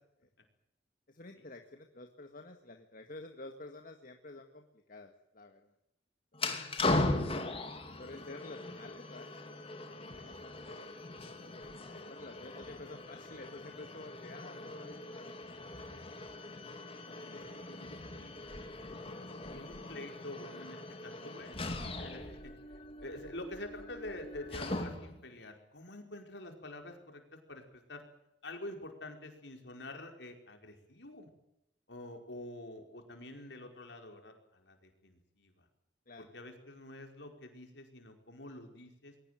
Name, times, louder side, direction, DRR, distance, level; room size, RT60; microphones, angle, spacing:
voice 1, 1.1-5.7 6.3-6.6 8.0-10.9 11.5-15.3 16.3-16.5 17.1-17.5 36.1-36.3, left 2 dB, 50° left, 5 dB, 1.9 m, -51 dB
sound 1, 6.3-25.2, left 2 dB, 30° left, 2.7 m, -39 dB
voice 2, 17.1-18.3 18.7-18.9 19.4-22.5 23.0-27.2 27.5-28.0 28.4-31.3 31.9-35.7 36.3-39.1, left 1 dB, 65° left, 4 dB, 5.2 m, -47 dB
22.0 x 18.5 x 9.3 m, 0.81 s
head